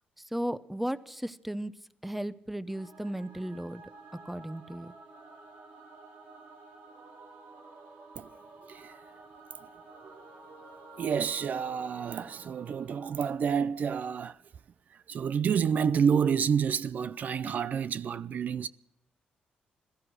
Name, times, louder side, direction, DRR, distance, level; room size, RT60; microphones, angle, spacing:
voice 1, 0.2-1.7 2.0-3.8 4.2-4.9, right 1 dB, 5° right, 0.8 m, -35 dB
Singing / Musical instrument, 2.7-14.0, right 3 dB, 85° right, 3.9 m, -51 dB
voice 2, 8.6-9.0 10.0-10.1 11.0-14.4 14.9-18.7, right 7 dB, 60° right, 0.5 m, -29 dB
16.5 x 14.0 x 6.3 m
cardioid pair, 85°, 3 cm